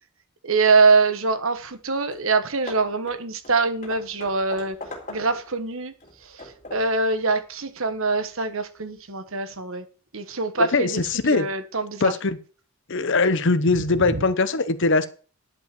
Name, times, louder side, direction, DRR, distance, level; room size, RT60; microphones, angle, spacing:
voice 1, 0.4-4.8 5.1-5.9 6.2-9.8 10.1-11.0 11.3-12.1 14.0-14.2, right 4 dB, 60° right, 1.3 m, -23 dB
Hammer / Wood, 1.7-1.8 2.1-2.3 2.7-5.5 6.0-7.0, left 2 dB, 35° left, 3.3 m, -41 dB
voice 2, 10.6-11.5 12.0-12.4 12.9-15.1, left 3 dB, 55° left, 0.9 m, -21 dB
11.0 x 5.6 x 7.6 m
head